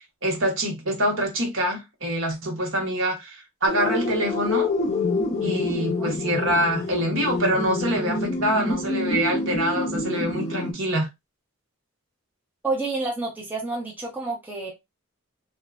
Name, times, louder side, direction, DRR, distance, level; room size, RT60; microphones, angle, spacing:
voice 1, 0.2-4.7 5.4-11.1, equal, 60° right, 0.9 m, -25 dB
sound 1, 3.7-10.7, left 2 dB, 30° left, 0.6 m, -27 dB
voice 2, 12.6-14.7, right 3 dB, 10° right, 0.6 m, -29 dB
3.0 x 2.2 x 2.3 m
head